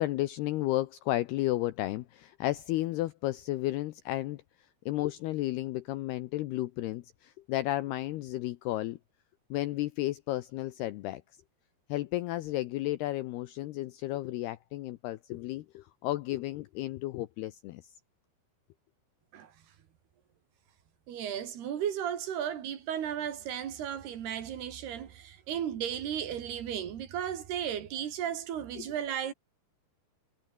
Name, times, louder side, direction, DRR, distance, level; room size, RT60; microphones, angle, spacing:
voice 1, 0.0-4.4 4.9-9.0 9.5-11.2 11.9-17.8 28.8-28.9, left 16 dB, 80° left, 2.4 m, -33 dB
voice 2, 21.1-29.3, right 9 dB, 60° right, 4.0 m, -35 dB
omnidirectional pair, 5.5 m